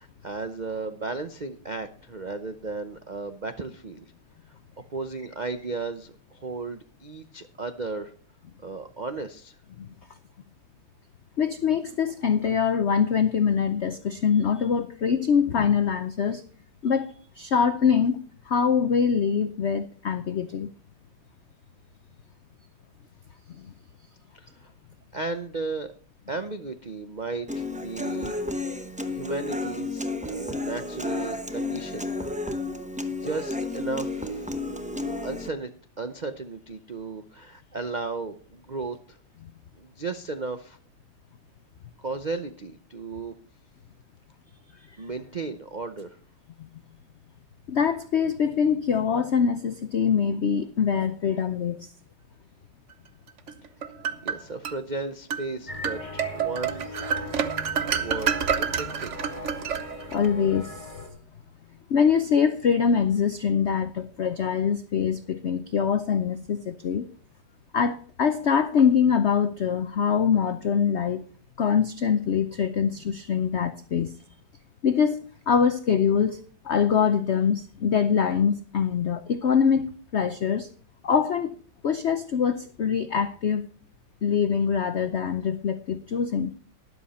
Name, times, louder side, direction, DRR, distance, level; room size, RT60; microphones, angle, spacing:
voice 1, 0.0-4.1 4.9-8.1 8.6-9.6 24.3-24.7 25.1-25.9 26.3-28.4 29.1-32.1 33.1-34.5 35.0-35.7 36.0-39.2 39.8-40.8 42.0-43.3 45.0-46.2 54.2-56.9 58.0-58.3 58.6-59.2, right 3 dB, 75° right, 9 dB, 0.4 m, -35 dB
voice 2, 11.4-16.4 16.8-20.7 23.6-23.7 47.7-51.9 60.1-60.9 61.9-67.1 67.7-71.2 71.6-74.1 74.8-80.7 81.0-81.5 81.8-83.6 84.2-86.5, left 7 dB, 80° left, 11 dB, 0.6 m, -24 dB
Human voice / Acoustic guitar, 27.5-35.5, left 2 dB, 10° right, 0.4 m, -32 dB
sound 1, 53.5-54.8 55.3-55.5 55.8-60.3, right 7 dB, 50° right, 0.9 m, -28 dB
sound 2, 55.7-61.1, left 2 dB, 20° left, 1.5 m, -39 dB
13.0 x 11.0 x 4.2 m, 0.42 s
omnidirectional pair, 2.0 m